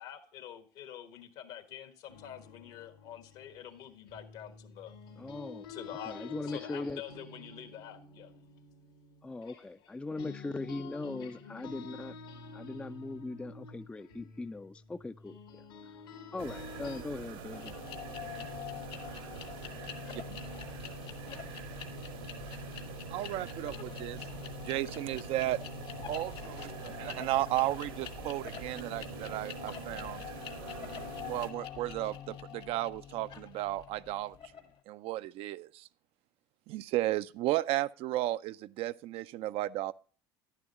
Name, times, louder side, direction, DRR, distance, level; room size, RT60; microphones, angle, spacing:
voice 1, 0.0-4.9 5.7-8.3, left 10 dB, 70° left, 1.4 m, -46 dB
sound 1, 2.1-9.9 10.2-17.0, left 4 dB, 85° left, 2.7 m, -49 dB
voice 2, 5.2-5.7 6.0-7.0 9.2-12.2 12.5-15.4 16.3-17.7, left 2 dB, 10° left, 0.3 m, -40 dB
sound 2, 16.4-31.5, right 5 dB, 85° right, 1.7 m, -44 dB
sound 3, 17.5-34.7, left 9 dB, 50° left, 1.2 m, -45 dB
voice 3, 23.1-24.3 24.6-25.6 26.1-30.2 31.2-34.4 34.9-35.9 36.7-39.9, right 15 dB, 55° right, 0.4 m, -34 dB
11.0 x 9.9 x 2.9 m
hypercardioid pair, 75°, 11 cm